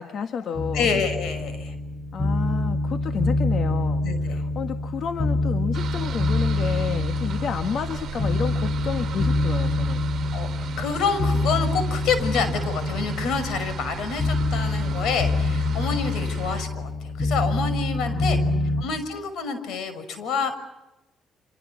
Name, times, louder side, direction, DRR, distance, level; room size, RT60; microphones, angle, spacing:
voice 1, 0.0-0.9 2.1-10.1 18.0-19.0, left 6 dB, 60° left, 8 dB, 1.8 m, -31 dB
sound 1, 0.5-18.8, left 2 dB, 35° left, 6.2 m, -26 dB
voice 2, 0.7-1.7 4.0-4.4 10.3-18.4 18.8-20.5, left 5 dB, 80° left, 11 dB, 6.0 m, -28 dB
sound 2, 5.7-16.7, right 8 dB, 60° right, 1.7 m, -37 dB
30.0 x 27.0 x 7.2 m, 0.99 s
cardioid pair, 90°, 0 cm